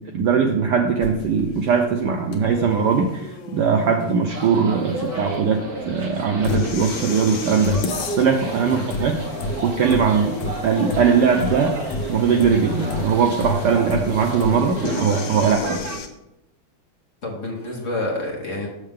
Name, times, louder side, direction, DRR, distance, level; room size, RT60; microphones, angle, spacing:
voice 1, 0.0-9.2 9.6-10.3 10.6-11.8 12.1-15.6, right 6 dB, 75° right, 4 dB, 1.0 m, -20 dB
sound 1, 1.0-16.1, left 3 dB, 70° left, 1.5 m, -31 dB
sound 2, 4.3-16.0, right 2 dB, 50° right, 1.4 m, -32 dB
voice 2, 15.4-15.8 17.2-18.7, left 2 dB, 40° left, -2 dB, 1.3 m, -28 dB
6.6 x 6.5 x 3.6 m, 0.87 s
omnidirectional pair, 2.4 m